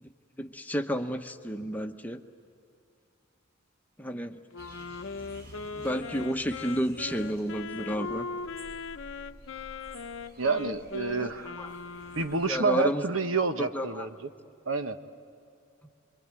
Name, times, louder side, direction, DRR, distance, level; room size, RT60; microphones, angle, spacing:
voice 1, 0.4-2.2 4.0-4.4 5.7-8.3 11.2-11.3 11.6-11.7 12.5-13.0 13.6-14.1, equal, 10° left, 5 dB, 0.9 m, -31 dB
Wind instrument woodwind instrument, 4.5-12.8, left 4 dB, 70° left, 0.8 m, -39 dB
sound 1, 4.6-12.6, equal, 50° right, 5.9 m, -52 dB
voice 2, 10.4-11.5 12.1-14.3 14.7-15.0, right 4 dB, 80° right, 8 dB, 1.2 m, -28 dB
27.0 x 23.5 x 9.0 m, 2.6 s
head